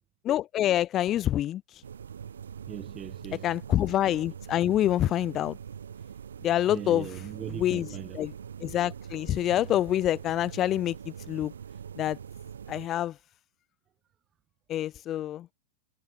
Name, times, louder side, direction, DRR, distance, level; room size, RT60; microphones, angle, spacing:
voice 1, 0.2-1.8 3.4-5.6 6.4-7.1 7.6-7.9 8.1-8.3 8.6-10.9 11.3-11.5 12.0-12.2 12.7-13.1 14.7-15.5, left 12 dB, 30° left, 0.7 m, -26 dB
sound 1, 1.8-12.9, right 8 dB, 65° right, 2.4 m, -43 dB
voice 2, 2.7-3.5 6.7-8.2, right 10 dB, 25° right, 0.9 m, -39 dB
figure-of-eight pair, 95°, 0 cm